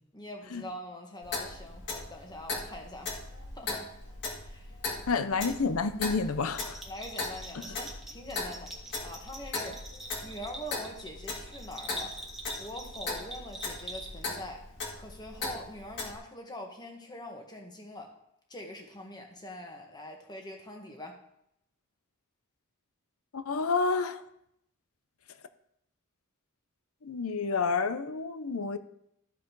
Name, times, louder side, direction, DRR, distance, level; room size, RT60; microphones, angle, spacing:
voice 1, 0.1-3.8 4.4-4.7 6.9-8.7 9.0-9.8 10.2-12.1 12.6-14.6 14.9-18.1 18.5-21.2, left 1 dB, 20° left, 2 dB, 1.5 m, -44 dB
Clock, 1.2-16.1, left 3 dB, 55° left, 2.0 m, -39 dB
voice 2, 5.1-6.8 23.3-24.2 27.0-28.8, left 4 dB, 70° left, 11 dB, 0.7 m, -29 dB
Bell, 6.5-14.4, right 1 dB, ahead, 1.4 m, -44 dB
13.5 x 4.9 x 4.7 m, 0.75 s
head